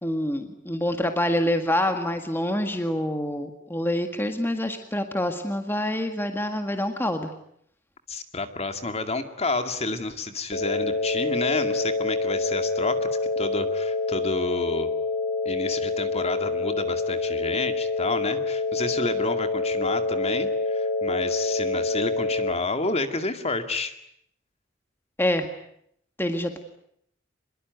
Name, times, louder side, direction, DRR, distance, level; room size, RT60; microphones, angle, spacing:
voice 1, 0.0-7.3 25.2-25.5 26.2-26.6, left 1 dB, 10° left, 6 dB, 1.8 m, -26 dB
voice 2, 8.1-13.1 13.4-14.9 15.5-23.9, left 3 dB, 35° left, 8 dB, 2.2 m, -30 dB
sound 1, 10.5-22.5, left 3 dB, 60° left, 4.6 m, -27 dB
25.5 x 22.0 x 9.3 m, 0.71 s
head